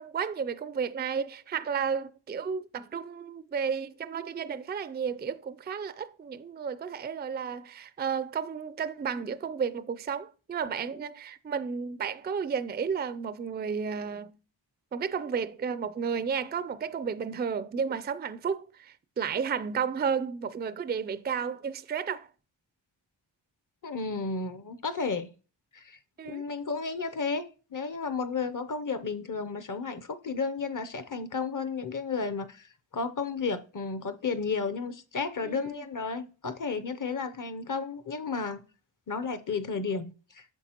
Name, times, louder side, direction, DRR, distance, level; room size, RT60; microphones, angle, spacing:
voice 1, 0.0-14.3 14.9-22.3 26.2-26.4 35.4-35.8, right 6 dB, 25° right, 0.3 m, -32 dB
voice 2, 23.8-25.3 25.7-27.4 27.7-38.6 39.1-40.5, left 4 dB, 45° left, 0.7 m, -33 dB
9.1 x 6.8 x 2.9 m
wide cardioid pair, 80°, 45 cm